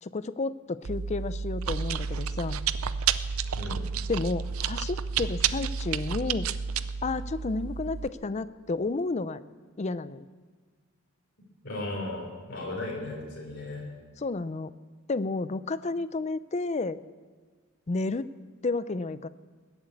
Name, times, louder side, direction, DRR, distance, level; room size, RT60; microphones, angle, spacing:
voice 1, 0.0-2.6 4.1-6.5 7.0-9.4 9.8-10.3 14.2-14.7 15.1-17.0 17.9-18.3 18.6-19.3, left 3 dB, 35° left, 15 dB, 0.5 m, -31 dB
Chewing mastication, 0.8-8.1, right 6 dB, 85° right, 0.5 m, -31 dB
voice 2, 3.5-3.9 11.6-13.9, left 2 dB, 55° left, -3 dB, 3.8 m, -36 dB
20.0 x 8.1 x 8.4 m, 1.5 s
head